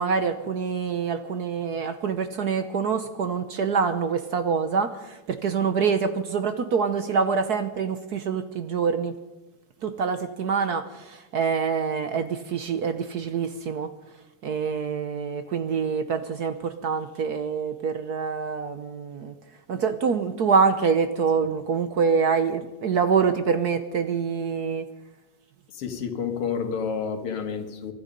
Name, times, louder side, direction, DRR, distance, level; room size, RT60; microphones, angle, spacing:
voice 1, 0.0-9.1 9.8-13.9 14.4-19.3 19.7-24.8, right 5 dB, 60° right, 9 dB, 1.2 m, -25 dB
voice 2, 25.7-27.9, left 6 dB, 90° left, 7 dB, 2.5 m, -29 dB
24.0 x 11.5 x 5.3 m, 1.1 s
omnidirectional pair, 2.4 m